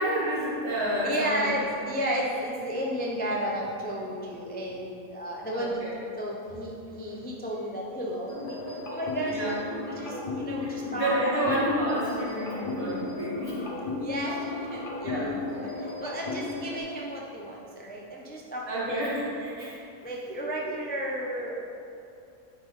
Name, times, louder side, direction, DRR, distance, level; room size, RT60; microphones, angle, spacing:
voice 1, 0.0-1.6 5.5-5.9 9.3-9.5 10.6-13.6 15.0-15.3 18.7-19.8 20.4-20.5, right 1 dB, 70° right, -8 dB, 2.4 m, -29 dB
voice 2, 1.0-5.8 6.2-8.6 8.9-9.4 9.8-11.2 14.0-19.0 20.0-21.5, equal, 15° left, -3 dB, 0.4 m, -33 dB
sound 1, 8.3-16.8, left 3 dB, 40° left, 1.0 m, -35 dB
9.5 x 5.7 x 3.2 m, 2.7 s
omnidirectional pair, 1.5 m